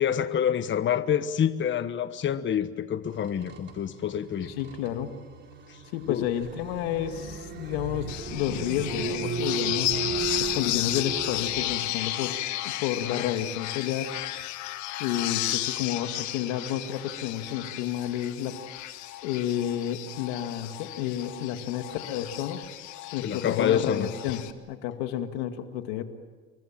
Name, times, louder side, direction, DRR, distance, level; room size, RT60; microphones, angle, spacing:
voice 1, 0.0-4.5 5.7-5.8 6.1-6.3 23.2-24.1, left 9 dB, 40° left, 11 dB, 1.2 m, -27 dB
sound 1, 3.1-11.8, right 5 dB, 35° right, 4.0 m, -36 dB
voice 2, 4.6-5.2 5.9-10.0 10.4-12.4 12.6-14.1 15.0-18.6 19.2-22.7 23.1-24.4 24.7-26.0, left 11 dB, 90° left, 7 dB, 2.1 m, -31 dB
sound 2, 8.1-24.5, left 15 dB, 70° left, 1.7 m, -33 dB
28.5 x 23.5 x 7.5 m, 1.4 s
supercardioid pair, 95°, 30 cm